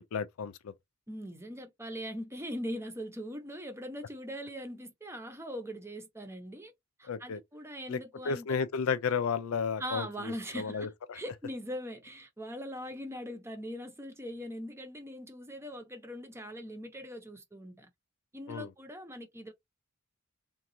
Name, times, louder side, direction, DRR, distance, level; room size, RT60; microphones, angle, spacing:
voice 1, 0.1-0.7 7.1-7.4 7.9-8.0 8.3-10.9 18.5-18.7, left 6 dB, 70° left, 0.4 m, -32 dB
voice 2, 1.1-6.7 7.0-8.6 9.8-17.9 18.3-19.5, equal, 10° right, 0.7 m, -41 dB
3.9 x 2.3 x 2.7 m
head